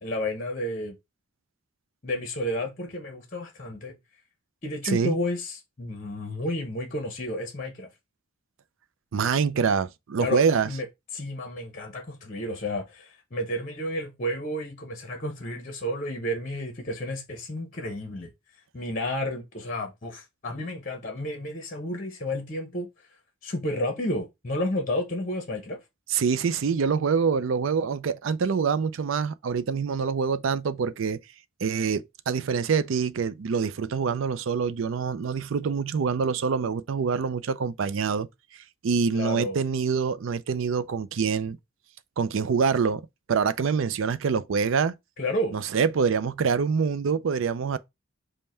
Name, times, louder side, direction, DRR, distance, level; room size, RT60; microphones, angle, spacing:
voice 1, 0.0-1.0 2.0-3.9 4.6-7.9 10.2-10.9 11.1-18.3 18.7-22.9 23.4-25.8 39.1-39.6 45.2-45.6, left 1 dB, 40° left, 0.9 m, -31 dB
voice 2, 9.1-10.7 26.1-31.2 31.6-38.3 38.8-41.6 42.2-43.0 43.3-44.9 45.5-47.8, right 5 dB, 70° right, 0.4 m, -25 dB
5.3 x 2.2 x 4.3 m
head